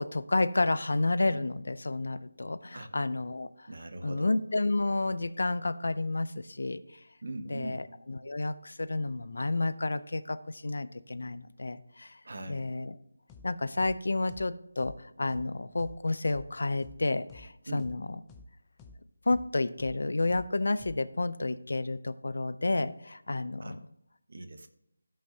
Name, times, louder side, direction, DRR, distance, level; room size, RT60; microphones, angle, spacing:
voice 1, 0.0-3.7 4.0-6.8 7.5-12.2 12.5-13.0 13.4-18.2 19.3-23.8, left 2 dB, 65° left, 14 dB, 0.5 m, -30 dB
voice 2, 3.7-4.3 7.2-7.8 12.2-12.7 17.7-17.9 23.6-23.8 24.3-24.7, right 2 dB, 50° right, 9 dB, 0.9 m, -41 dB
sound 1, 13.3-13.5 13.8-14.0 14.3-14.5 14.8-15.0 15.3-15.5 15.8-16.0 16.3-16.5 16.8-17.0 17.3-17.5 17.8-18.0 18.3-18.5 18.8-19.0 19.3-19.5 19.8-20.0 20.3-20.5 20.8-21.0, left 3 dB, 5° left, 0.4 m, -51 dB
15.5 x 5.4 x 2.8 m, 0.81 s
figure-of-eight pair, 175°, 0 cm